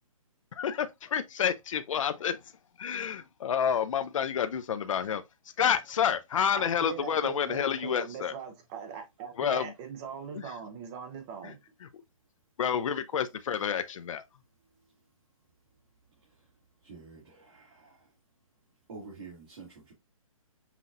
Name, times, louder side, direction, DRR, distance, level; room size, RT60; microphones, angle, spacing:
voice 1, 0.6-2.4 2.8-5.2 5.6-8.3 9.4-9.6 12.6-14.2, left 8 dB, 65° left, 0.5 m, -29 dB
voice 2, 6.5-11.6, right 6 dB, 15° right, 0.5 m, -41 dB
voice 3, 16.8-18.1 18.9-19.9, right 4 dB, 45° right, 1.9 m, -48 dB
5.7 x 2.4 x 2.5 m
hypercardioid pair, 160°, 18 cm